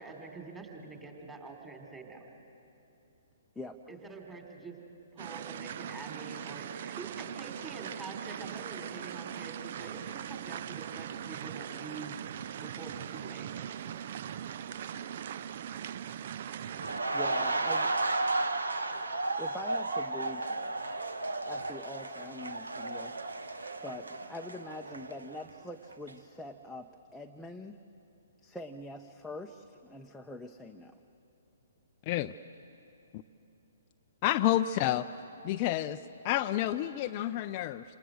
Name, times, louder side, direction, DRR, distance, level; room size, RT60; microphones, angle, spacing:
voice 1, 0.0-2.2 3.9-4.8 5.1-12.2 12.6-13.5, right 3 dB, 10° right, 2 dB, 3.3 m, -46 dB
sound 1, 5.2-17.0, right 9 dB, 45° right, 0.5 m, -40 dB
sound 2, 16.7-25.6 25.9-26.1, right 2 dB, 70° right, 1.3 m, -33 dB
voice 2, 17.1-17.9 19.4-20.8 21.4-23.1 23.8-27.8 28.4-31.0, left 2 dB, 5° left, 2 dB, 0.8 m, -44 dB
voice 3, 34.2-35.1 35.4-37.8, left 13 dB, 35° left, 9 dB, 0.5 m, -29 dB
27.5 x 27.0 x 6.6 m, 2.9 s
figure-of-eight pair, 125°, 0 cm